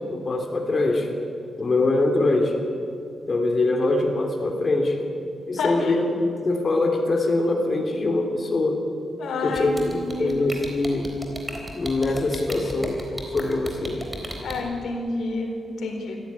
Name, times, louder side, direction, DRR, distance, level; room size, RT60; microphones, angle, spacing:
voice 1, 0.1-1.1 1.6-2.5 3.3-5.0 5.5-8.8 9.4-11.1 11.7-13.0 13.3-14.0, left 2 dB, 35° left, 2 dB, 3.3 m, -23 dB
voice 2, 5.6-6.0 9.2-10.4 14.4-16.2, left 3 dB, 90° left, 3 dB, 3.8 m, -29 dB
sound 1, 9.6-14.5, right 1 dB, 10° right, 3.9 m, -34 dB
26.5 x 15.0 x 9.8 m, 2.6 s
wide cardioid pair, 150°, 0 cm